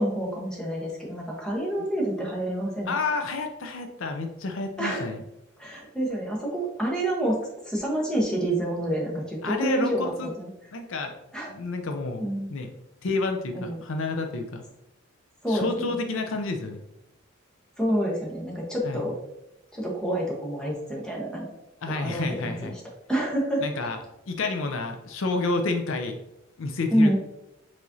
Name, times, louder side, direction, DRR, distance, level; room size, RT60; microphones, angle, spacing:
voice 1, 0.0-2.9 4.8-5.0 5.6-7.4 7.6-10.5 11.3-11.5 12.2-12.5 13.5-13.8 15.4-15.9 17.8-19.1 19.7-21.6 22.0-22.7 23.1-23.6 26.9-27.2, right 1 dB, 5° left, -3 dB, 1.1 m, -27 dB
voice 2, 2.9-5.2 9.4-10.3 10.7-11.1 11.5-12.7 13.0-14.6 15.5-16.8 18.8-19.1 21.8-22.8 23.6-24.0 24.3-26.2 26.6-27.2, left 3 dB, 65° left, 5 dB, 0.5 m, -30 dB
4.7 x 4.1 x 2.7 m, 0.89 s
head